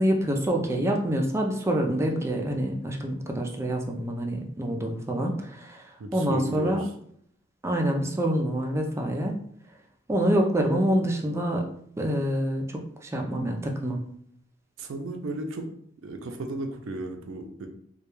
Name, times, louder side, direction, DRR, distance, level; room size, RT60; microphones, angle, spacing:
voice 1, 0.0-6.8 7.6-9.4 10.1-11.7 12.0-14.0, right 1 dB, 15° right, 2 dB, 0.3 m, -26 dB
voice 2, 6.0-6.9 14.8-15.7 16.0-17.7, right 2 dB, 85° right, 4 dB, 0.4 m, -34 dB
2.2 x 2.1 x 3.0 m, 0.65 s
head